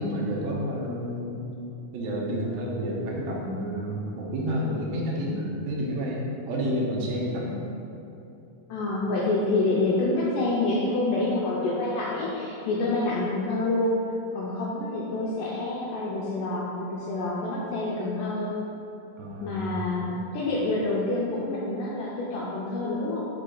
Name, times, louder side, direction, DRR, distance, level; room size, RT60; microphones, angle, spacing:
voice 1, 0.0-1.5 1.9-7.6 19.2-19.6 20.0-20.3, equal, 75° right, -3 dB, 2.5 m, -30 dB
voice 2, 8.7-14.0 14.3-18.5 19.4-20.0 20.3-23.3, left 2 dB, 85° left, -5 dB, 1.8 m, -27 dB
5.4 x 5.0 x 3.9 m, 2.8 s
omnidirectional pair, 4.5 m